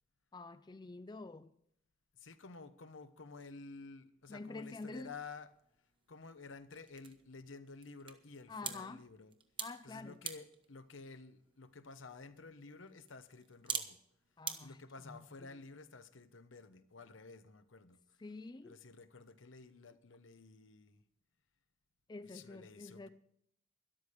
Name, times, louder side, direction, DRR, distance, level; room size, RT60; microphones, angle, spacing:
voice 1, 0.3-1.5 4.3-5.2 8.5-9.0 9.6-10.2 14.4-15.6 18.2-18.8 22.1-23.1, left 3 dB, 20° left, 0.4 m, -48 dB
voice 2, 2.2-5.5 6.1-9.3 9.8-14.0 14.6-18.0 18.6-21.0 22.2-23.1, left 4 dB, 80° left, 1.0 m, -52 dB
sound 1, 5.2-14.6, right 6 dB, 25° right, 1.0 m, -48 dB
12.5 x 11.5 x 5.0 m
head